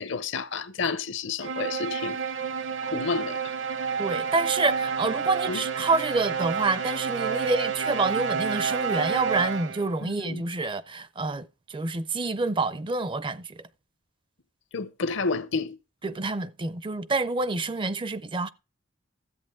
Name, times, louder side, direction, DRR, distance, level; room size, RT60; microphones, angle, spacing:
voice 1, 0.0-2.2 2.8-3.4 5.5-5.6 10.0-10.4 14.7-15.8, left 4 dB, 65° left, 0.8 m, -30 dB
sound 1, 1.4-10.0, right 6 dB, 65° right, 0.9 m, -29 dB
voice 2, 4.0-13.6 16.0-18.5, right 3 dB, 25° right, 0.4 m, -28 dB
13.5 x 8.2 x 3.6 m
head